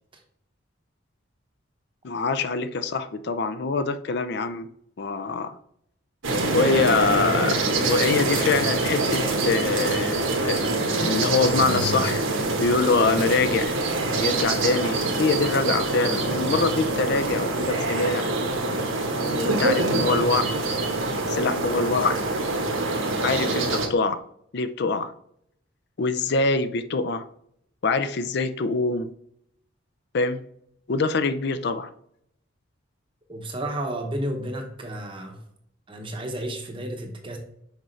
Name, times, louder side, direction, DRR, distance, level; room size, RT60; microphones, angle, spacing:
voice 1, 2.0-4.7 5.0-5.6 6.5-10.6 11.0-13.8 14.2-18.3 19.2-20.7 21.3-22.2 23.2-24.2 24.5-25.1 26.0-27.2 27.8-29.1 30.1-30.4 30.9-31.9, left 3 dB, 55° left, 11 dB, 0.5 m, -24 dB
sound 1, 6.2-23.9, right 2 dB, 85° right, 1.3 m, -25 dB
voice 2, 33.3-35.4 35.9-37.4, right 1 dB, 25° right, 2 dB, 0.8 m, -32 dB
6.4 x 4.8 x 3.2 m, 0.72 s
head